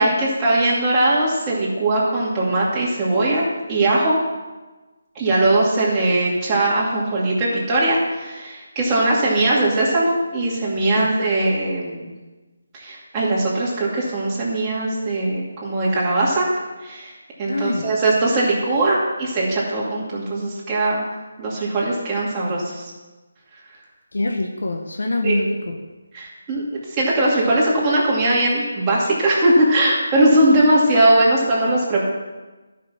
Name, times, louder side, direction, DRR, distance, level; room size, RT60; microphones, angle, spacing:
voice 1, 0.0-4.2 5.2-12.1 12.7-16.5 16.8-17.1 17.4-21.0 21.4-22.9 25.2-25.4 26.1-26.7 27.0-32.1, right 2 dB, 15° right, -6 dB, 2.4 m, -20 dB
voice 2, 17.5-17.9 24.1-25.8, left 2 dB, 80° left, 3 dB, 1.0 m, -24 dB
12.0 x 5.9 x 5.8 m, 1.2 s
figure-of-eight pair, 165°, 0 cm